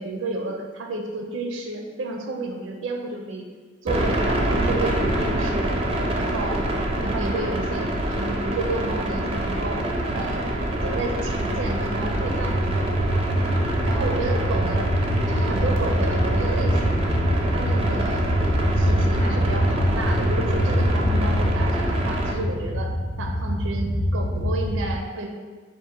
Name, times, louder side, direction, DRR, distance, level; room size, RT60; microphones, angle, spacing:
voice 1, 0.0-3.5 3.8-5.8 6.1-6.6 7.0-9.8 10.1-10.5 10.8-13.0 13.8-15.0 15.3-17.0 17.5-18.2 18.8-25.5, right 2 dB, 80° right, 2 dB, 0.5 m, -31 dB
sound 1, 3.9-22.3, right 1 dB, 30° right, 0.4 m, -26 dB
sound 2, 10.5-25.0, equal, 35° left, 0.5 m, -24 dB
3.6 x 2.5 x 4.5 m, 1.5 s
head